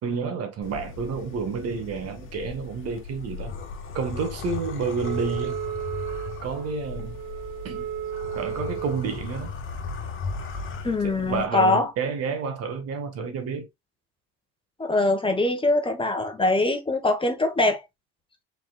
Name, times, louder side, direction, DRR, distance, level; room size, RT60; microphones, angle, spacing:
voice 1, 0.0-3.5 3.9-5.6 6.4-7.2 7.6-7.9 8.3-9.5 11.0-13.7, right 5 dB, 55° right, 1.6 m, -30 dB
sound 1, 0.6-11.5, left 4 dB, 45° left, 1.5 m, -37 dB
Wind instrument woodwind instrument, 5.0-9.1, right 9 dB, 75° right, 0.9 m, -34 dB
voice 2, 10.8-11.9 14.8-17.8, left 2 dB, 20° left, 1.3 m, -23 dB
5.1 x 4.2 x 2.4 m
supercardioid pair, 95°, 29 cm